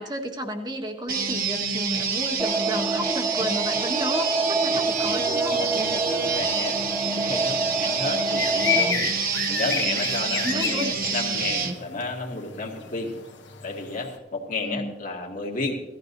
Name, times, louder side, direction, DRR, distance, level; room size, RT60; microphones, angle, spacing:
voice 1, 0.0-5.6 10.4-10.9 14.7-14.9, equal, 25° right, 3 dB, 1.4 m, -32 dB
sound 1, 1.1-11.8, right 5 dB, 55° right, 1.1 m, -27 dB
sound 2, 2.4-8.9, right 2 dB, 10° right, 0.4 m, -27 dB
sound 3, 4.9-14.2, left 8 dB, 90° left, 1.5 m, -33 dB
voice 2, 5.5-9.1 9.5-13.1 13.6-15.8, left 3 dB, 45° left, 0 dB, 2.1 m, -32 dB
17.5 x 14.0 x 2.7 m, 1.1 s
head